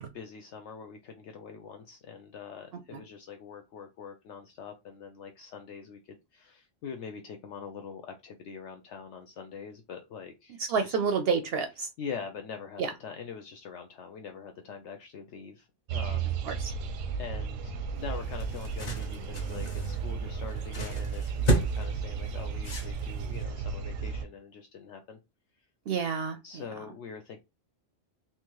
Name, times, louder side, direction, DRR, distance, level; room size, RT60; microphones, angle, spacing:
voice 1, 0.1-11.0 12.0-16.4 17.2-25.2 26.4-27.4, left 6 dB, 70° left, 5 dB, 0.8 m, -43 dB
voice 2, 10.6-11.9 12.8-12.9 16.4-16.7 25.9-26.6, right 5 dB, 65° right, 7 dB, 0.7 m, -29 dB
sound 1, 15.9-24.3, right 6 dB, 90° right, 1.0 m, -33 dB
sound 2, 18.0-23.4, equal, 40° left, 0.8 m, -34 dB
3.5 x 2.8 x 3.0 m, 0.24 s
omnidirectional pair, 1.3 m